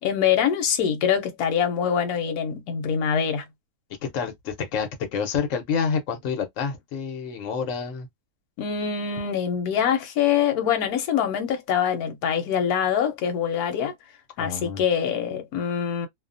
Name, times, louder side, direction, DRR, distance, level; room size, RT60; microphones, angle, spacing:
voice 1, 0.0-3.4 8.6-13.9 14.4-16.1, left 8 dB, 90° left, 1.2 m, -24 dB
voice 2, 4.1-8.1 14.4-14.8, left 6 dB, 60° left, 1.1 m, -28 dB
2.7 x 2.0 x 2.5 m
omnidirectional pair, 1.5 m